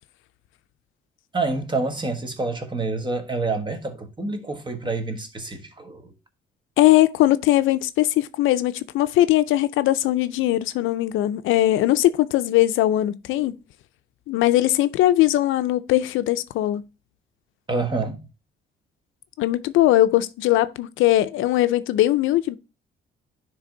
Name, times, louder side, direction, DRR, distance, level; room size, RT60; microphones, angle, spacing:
voice 1, 1.3-6.1 17.7-18.3, right 3 dB, 25° right, 1.3 m, -27 dB
voice 2, 6.8-13.5 14.3-16.8 19.4-22.6, left 15 dB, 85° left, 0.5 m, -20 dB
9.8 x 3.4 x 3.8 m
cardioid pair, 90°, 20 cm